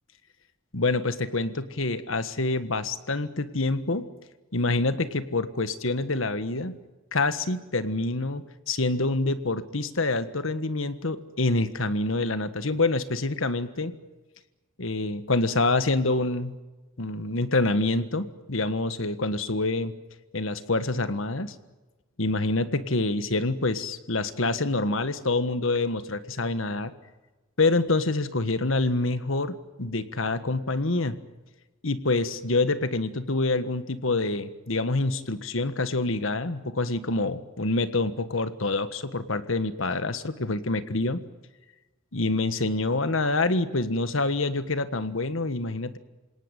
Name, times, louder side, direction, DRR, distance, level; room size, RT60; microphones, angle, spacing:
voice 1, 0.7-4.0 4.5-6.8 7.1-13.9 14.8-16.6 17.0-19.9 20.3-21.5 22.2-26.9 27.6-31.2 31.8-41.2 42.1-46.0, left 2 dB, 70° left, 12 dB, 1.5 m, -26 dB
28.0 x 18.0 x 9.1 m, 1.2 s
head